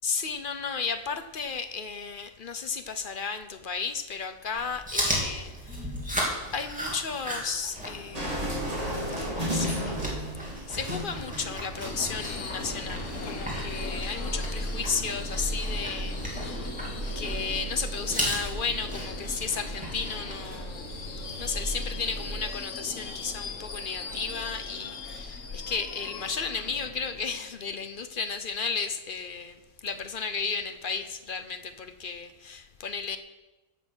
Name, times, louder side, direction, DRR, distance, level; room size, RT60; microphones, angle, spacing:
voice 1, 0.0-5.9 6.5-10.0 10.7-16.7 17.1-20.9 21.4-33.2, left 5 dB, 45° left, 10 dB, 0.8 m, -34 dB
Chewing mastication, 4.5-20.4, equal, 5° right, 2.9 m, -36 dB
sound 1, 8.1-22.4, right 1 dB, 25° right, 2.6 m, -35 dB
Subway metro underground / Screech, 11.7-27.6, left 4 dB, 65° left, 1.6 m, -40 dB
15.5 x 7.1 x 6.2 m, 1.1 s
omnidirectional pair, 1.4 m